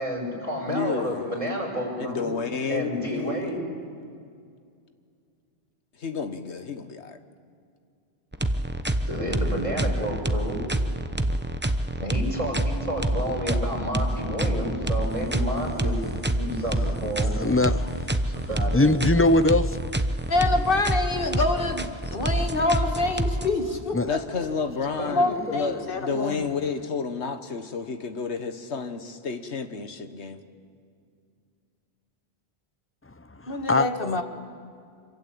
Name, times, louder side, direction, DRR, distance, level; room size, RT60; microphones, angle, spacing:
voice 1, 0.0-2.3 2.7-3.6 9.1-10.6 12.0-16.0 16.4-17.4 18.4-18.9 25.0-25.3, equal, 30° right, 5.9 m, -30 dB
voice 2, 0.7-1.5 2.0-3.6 6.0-7.2 24.0-30.4, left 5 dB, 90° left, 1.7 m, -31 dB
sound 1, 8.3-23.5, right 1 dB, 10° right, 0.8 m, -27 dB
voice 3, 17.3-18.1 18.7-19.8 23.9-24.1 33.5-34.2, left 2 dB, 15° left, 0.5 m, -22 dB
voice 4, 20.3-24.2 25.1-26.5 33.5-34.2, left 2 dB, 55° left, 2.1 m, -26 dB
26.0 x 23.5 x 8.7 m
omnidirectional pair, 1.1 m